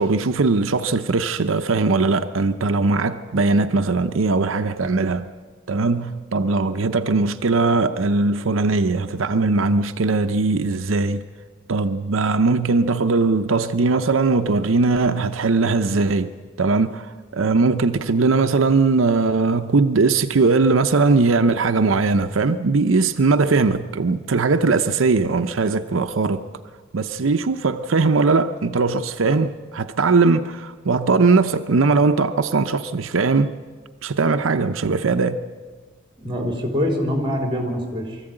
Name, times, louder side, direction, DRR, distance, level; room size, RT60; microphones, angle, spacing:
voice 1, 0.0-5.3 5.7-11.2 11.7-16.3 16.6-26.4 26.9-33.5 34.0-35.4, right 3 dB, 85° right, 0.7 m, -20 dB
voice 2, 36.2-38.2, equal, 25° right, 3.7 m, -24 dB
22.5 x 14.5 x 8.9 m
head